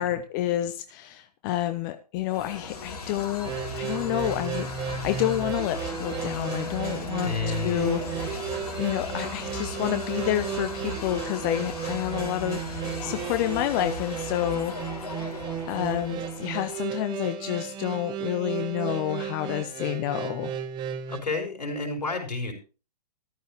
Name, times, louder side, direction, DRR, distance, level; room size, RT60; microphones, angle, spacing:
voice 1, 0.0-7.3 7.6-8.4 8.8-14.7 15.6-20.5, left 13 dB, 30° left, 10 dB, 0.8 m, -29 dB
sound 1, 2.3-17.0, left 3 dB, 65° left, 3.6 m, -37 dB
sound 2, 3.4-21.2, right 8 dB, 20° right, 1.2 m, -34 dB
voice 2, 7.2-7.9 21.1-22.5, left 4 dB, 80° left, 2 dB, 4.7 m, -31 dB
14.0 x 12.0 x 3.2 m, 0.34 s
hypercardioid pair, 135°, 21 cm